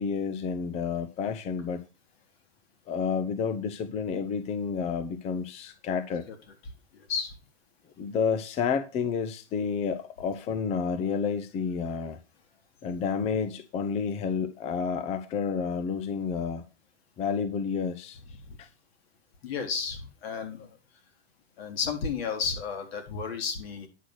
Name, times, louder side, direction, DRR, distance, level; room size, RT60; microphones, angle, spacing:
voice 1, 0.0-1.8 2.9-6.3 8.0-12.2 12.8-16.6 17.2-18.7, left 6 dB, 20° left, 11 dB, 0.6 m, -30 dB
voice 2, 19.4-20.7 21.6-23.9, left 6 dB, 60° left, 5 dB, 3.9 m, -32 dB
10.0 x 6.2 x 6.2 m, 0.31 s
hypercardioid pair, 140°, 34 cm